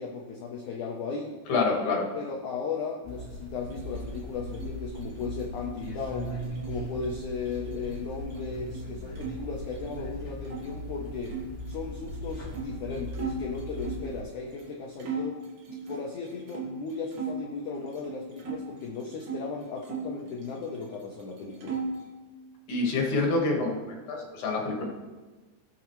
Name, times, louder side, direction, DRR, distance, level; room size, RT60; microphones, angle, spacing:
voice 1, 0.0-1.4 2.1-6.4 6.6-11.4 11.7-15.4 15.9-21.8, left 4 dB, 80° left, 0 dB, 1.7 m, -36 dB
voice 2, 1.5-2.0 22.7-23.8 24.1-24.8, left 3 dB, 55° left, 0 dB, 2.6 m, -26 dB
sound 1, 3.0-14.2, equal, 10° left, 2.3 m, -39 dB
sound 2, 3.6-9.3 9.6-10.7 11.2-14.1 14.6-14.7 15.0-17.4 17.8-19.4 19.8-20.9 21.2-22.1, right 4 dB, 60° right, 3.3 m, -39 dB
18.0 x 7.1 x 3.2 m, 1.3 s
omnidirectional pair, 4.8 m